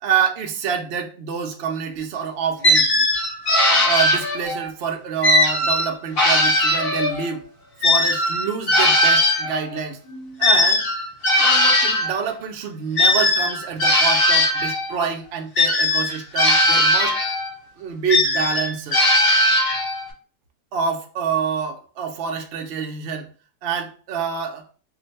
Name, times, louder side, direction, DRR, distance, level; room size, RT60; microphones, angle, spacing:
voice 1, 0.0-3.1 3.8-7.4 7.8-10.0 10.4-10.8 11.4-17.2 17.8-19.0 20.7-23.3 23.6-24.6, right 6 dB, 65° right, 0.6 m, -27 dB
sound 1, 2.6-4.7 5.2-7.3 7.8-12.2 13.0-14.9 15.6-17.5 18.1-20.1, left 1 dB, 45° left, 0.8 m, -19 dB
2.5 x 2.2 x 4.0 m
omnidirectional pair, 1.7 m